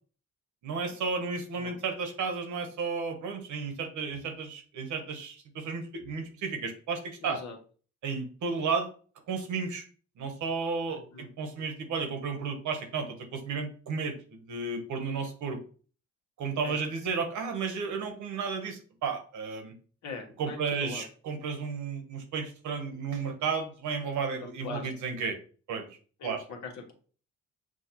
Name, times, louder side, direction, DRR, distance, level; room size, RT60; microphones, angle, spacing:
voice 1, 0.6-7.4 8.0-8.9 9.3-9.8 10.2-15.6 16.4-19.8 20.4-25.4 25.7-25.9 26.2-26.4, right 5 dB, 75° right, 5 dB, 1.1 m, -33 dB
voice 2, 7.2-7.6 10.9-11.6 16.6-16.8 20.0-21.0 24.3-24.9 26.2-26.9, left 4 dB, 65° left, 2 dB, 1.2 m, -42 dB
6.2 x 2.4 x 2.9 m, 0.40 s
cardioid pair, 90°, 30 cm